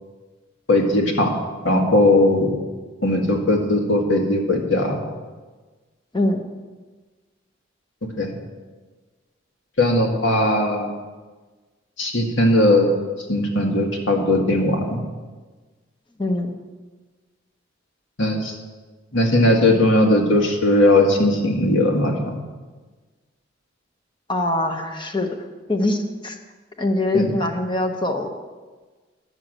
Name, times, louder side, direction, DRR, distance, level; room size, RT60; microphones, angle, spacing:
voice 1, 0.7-1.3 1.6-2.5 3.0-5.0 8.2-8.3 9.8-10.9 12.0-12.9 13.3-15.0 18.2-18.5 19.1-22.4 27.1-27.3, left 1 dB, 75° left, 1 dB, 1.9 m, -18 dB
voice 2, 16.2-16.5 24.3-25.4 25.7-26.3 26.8-28.3, left 2 dB, 25° left, 4 dB, 0.9 m, -23 dB
11.0 x 6.8 x 7.8 m, 1.3 s
head